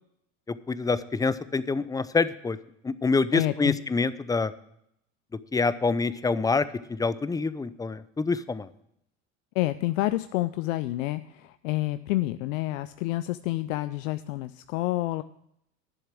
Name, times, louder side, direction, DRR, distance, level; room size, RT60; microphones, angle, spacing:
voice 1, 0.7-2.6 2.8-4.5 5.5-8.7, left 4 dB, 10° left, 15 dB, 0.5 m, -26 dB
voice 2, 3.3-3.8 9.5-15.2, left 17 dB, 75° left, 12 dB, 0.6 m, -28 dB
11.0 x 7.2 x 7.5 m, 0.75 s
hypercardioid pair, 85°, 39 cm